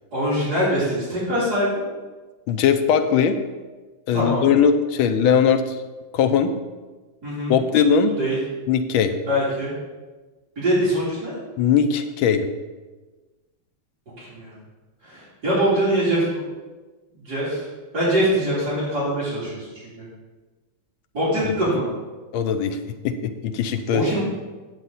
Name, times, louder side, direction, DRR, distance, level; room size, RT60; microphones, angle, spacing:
voice 1, 0.1-1.8 4.1-4.5 7.2-7.6 8.2-8.4 9.3-9.7 10.6-11.3 14.2-14.5 15.0-16.4 17.2-17.6 17.9-19.7 20.0-20.1 21.1-21.9 23.9-24.2, equal, 50° right, -9 dB, 3.7 m, -23 dB
voice 2, 2.5-3.4 4.1-5.8 6.1-6.5 7.5-8.1 8.7-9.1 11.6-12.5 22.3-22.8 23.0-24.0, left 7 dB, 80° left, 7 dB, 1.5 m, -19 dB
9.1 x 8.0 x 4.1 m, 1.3 s
omnidirectional pair, 2.2 m